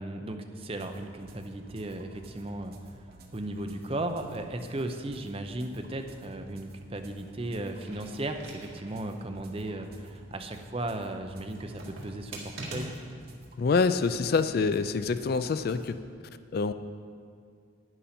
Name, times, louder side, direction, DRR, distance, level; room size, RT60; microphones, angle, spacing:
voice 1, 0.0-2.8 3.3-13.0, right 1 dB, 30° right, 6 dB, 0.6 m, -36 dB
sound 1, 0.6-15.9, right 1 dB, 50° right, 1.1 m, -54 dB
sound 2, 7.8-9.1 9.5-9.6 11.5-13.3 14.1-14.6, right 2 dB, 70° right, 2.0 m, -43 dB
voice 2, 13.6-16.0 16.5-16.7, left 4 dB, 50° left, 12 dB, 0.3 m, -26 dB
11.0 x 10.0 x 4.3 m, 2.3 s
head